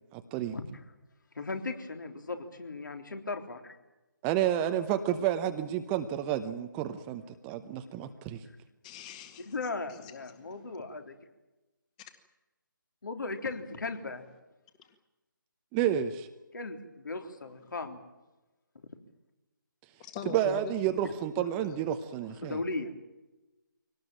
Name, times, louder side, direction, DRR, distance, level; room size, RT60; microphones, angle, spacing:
voice 1, 0.1-0.6 4.2-8.4 15.7-16.3 20.3-22.6, right 10 dB, 15° right, 8 dB, 0.8 m, -30 dB
voice 2, 1.4-3.8 9.5-11.2 13.0-14.2 16.5-18.0 22.4-22.9, left 3 dB, 65° left, 5 dB, 3.6 m, -37 dB
voice 3, 8.8-9.5 9.9-10.8 14.8-14.9 20.0-20.7 21.4-21.7, left 6 dB, 20° left, 8 dB, 1.9 m, -43 dB
23.5 x 18.5 x 9.1 m, 1.1 s
figure-of-eight pair, 150°, 11 cm